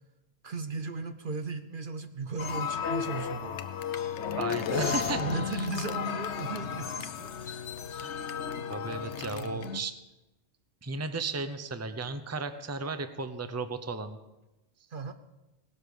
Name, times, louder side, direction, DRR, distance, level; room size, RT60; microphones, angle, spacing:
voice 1, 0.4-3.6 4.0-4.1 4.8-7.6 9.4-9.7 14.9-15.1, right 4 dB, 55° right, 9 dB, 0.9 m, -36 dB
sound 1, 2.4-9.8, left 7 dB, 80° left, 1.1 m, -34 dB
voice 2, 4.3-5.7 7.9-8.1 8.7-10.0 10.8-14.2, right 3 dB, 15° right, 10 dB, 0.7 m, -35 dB
18.0 x 12.5 x 5.2 m, 1.0 s
omnidirectional pair, 1.2 m